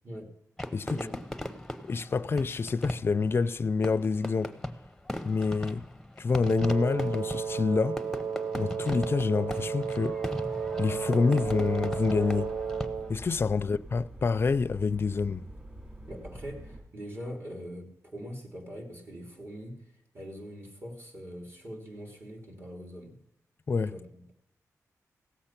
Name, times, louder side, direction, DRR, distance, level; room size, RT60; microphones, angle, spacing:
Fireworks, 0.6-13.3, left 1 dB, 5° left, 0.8 m, -38 dB
voice 1, 1.9-4.6 5.2-5.9 6.2-8.0 8.6-10.2 10.8-12.6 13.1-15.5 23.7-24.0, left 4 dB, 40° left, 0.4 m, -27 dB
Wind instrument woodwind instrument, 6.4-13.2, right 6 dB, 60° right, 0.5 m, -33 dB
sound 1, 11.4-16.8, right 1 dB, 25° right, 5.0 m, -45 dB
voice 2, 16.1-19.8 20.1-23.2 23.9-24.3, equal, 40° right, 3.3 m, -42 dB
16.5 x 7.8 x 5.9 m
wide cardioid pair, 120°, 6 cm